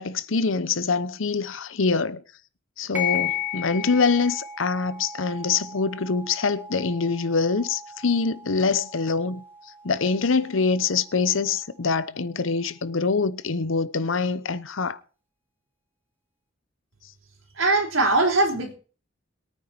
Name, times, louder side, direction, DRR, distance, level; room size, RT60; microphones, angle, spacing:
voice 1, 0.0-2.2 2.8-9.4 9.8-15.0, left 4 dB, 75° left, 0.8 m, -24 dB
sound 1, 2.9-11.9, left 8 dB, 10° right, 3.3 m, -35 dB
voice 2, 17.6-18.7, right 2 dB, 85° right, 3.9 m, -21 dB
21.5 x 9.2 x 4.4 m
head